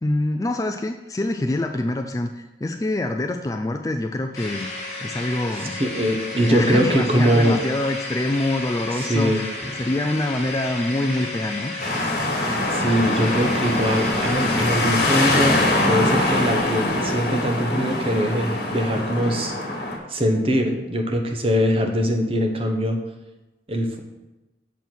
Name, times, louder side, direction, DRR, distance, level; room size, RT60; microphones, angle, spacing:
voice 1, 0.0-4.7 5.0-5.8 6.3-9.5 9.8-11.7, left 1 dB, 20° left, 5 dB, 0.3 m, -25 dB
sound 1, 4.3-15.9, left 2 dB, 35° left, 1.6 m, -32 dB
voice 2, 5.8-7.6 8.9-9.4 12.7-19.5 20.1-23.0 23.7-24.0, equal, 30° right, 3 dB, 0.9 m, -22 dB
sound 2, 11.8-20.0, left 1 dB, 55° left, 1.5 m, -23 dB
6.9 x 4.5 x 6.1 m, 1.0 s
head